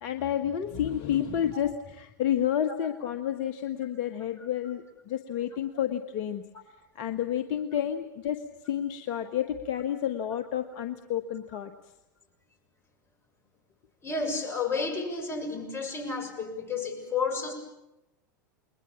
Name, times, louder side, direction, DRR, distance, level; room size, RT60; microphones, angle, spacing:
voice 1, 0.0-6.4 6.9-11.7, left 10 dB, 50° left, 7 dB, 1.4 m, -30 dB
voice 2, 14.0-17.5, left 4 dB, 25° left, 3 dB, 6.8 m, -31 dB
29.0 x 22.0 x 7.2 m, 0.94 s
hypercardioid pair, 90°, 11 cm